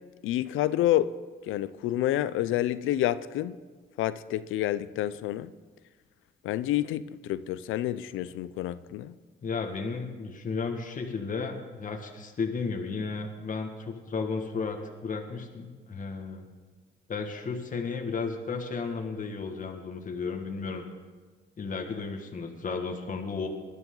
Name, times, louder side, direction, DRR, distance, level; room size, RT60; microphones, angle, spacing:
voice 1, 0.2-1.2 1.4-3.6 4.0-5.5 6.4-9.2, left 13 dB, 90° left, 0.5 m, -28 dB
voice 2, 9.4-16.4 17.1-20.8 21.6-23.5, left 4 dB, 40° left, 1.8 m, -33 dB
19.5 x 12.0 x 3.9 m
cardioid pair, 90°, 20 cm